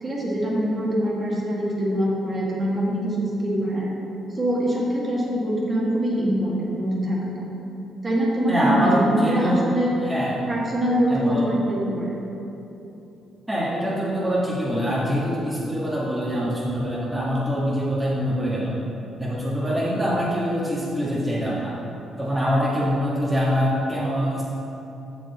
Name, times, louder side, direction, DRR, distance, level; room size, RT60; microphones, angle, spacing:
voice 1, 0.0-3.9 4.3-7.5 8.0-9.9 10.5-12.2, right 1 dB, 30° right, -5 dB, 1.6 m, -24 dB
voice 2, 8.5-9.7 10.0-10.5 11.1-11.5 13.5-18.8 19.2-21.8 22.2-24.4, equal, 10° right, -7 dB, 1.4 m, -24 dB
6.6 x 6.2 x 4.0 m, 2.9 s
cardioid pair, 90°, 0 cm